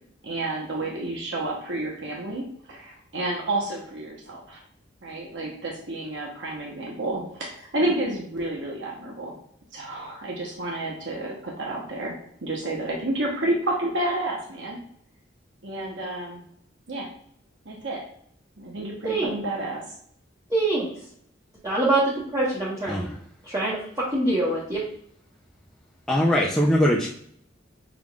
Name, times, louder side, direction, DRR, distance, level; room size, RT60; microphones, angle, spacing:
voice 1, 0.2-4.6 5.0-9.3 9.7-12.1 12.4-14.8 15.6-16.4 16.9-17.1 17.7-18.0 18.6-19.8, right 1 dB, 70° right, -1 dB, 1.0 m, -30 dB
voice 2, 20.5-20.9 21.6-22.4 22.8-23.1 23.5-24.8, right 2 dB, 15° right, -8 dB, 1.0 m, -24 dB
voice 3, 26.1-27.1, equal, 5° left, -5 dB, 0.5 m, -21 dB
6.1 x 3.6 x 2.4 m, 0.65 s
head